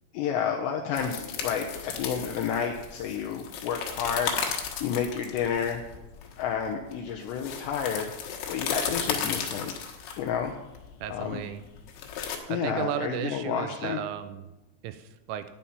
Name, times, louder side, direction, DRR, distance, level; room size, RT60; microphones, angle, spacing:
voice 1, 0.1-5.8 6.4-8.1 8.5-9.7 10.2-10.5 11.1-11.4 12.5-14.0, left 7 dB, 85° left, 2 dB, 2.5 m, -30 dB
sound 1, 1.0-12.4, left 7 dB, 70° left, 3.5 m, -35 dB
voice 2, 11.0-11.6 12.5-14.4 14.8-15.4, right 10 dB, 85° right, 11 dB, 3.0 m, -34 dB
11.0 x 9.2 x 5.7 m, 1.0 s
omnidirectional pair, 5.9 m